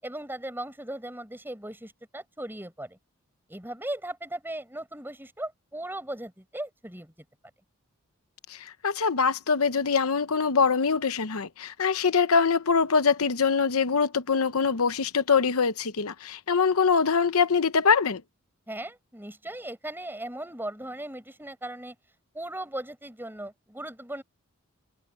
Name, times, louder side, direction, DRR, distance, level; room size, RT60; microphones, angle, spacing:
voice 1, 0.0-3.0 3.5-7.1 18.7-22.0 22.3-24.2, right 1 dB, 10° right, 7.4 m, -37 dB
voice 2, 8.5-18.2, left 5 dB, 75° left, 0.8 m, -23 dB
head